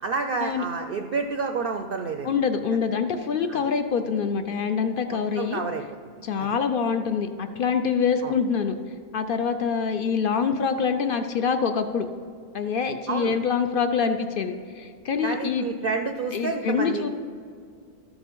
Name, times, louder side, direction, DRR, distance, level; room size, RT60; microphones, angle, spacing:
voice 1, 0.0-2.3 3.5-3.6 5.4-5.8 6.4-6.5 8.2-8.3 13.1-13.4 15.2-17.1, right 4 dB, 60° right, 5 dB, 0.6 m, -29 dB
voice 2, 2.2-5.6 6.2-8.7 9.1-12.1 12.5-15.7 16.3-17.1, left 6 dB, 65° left, 8 dB, 0.5 m, -25 dB
13.5 x 5.0 x 5.4 m, 2.2 s
omnidirectional pair, 1.4 m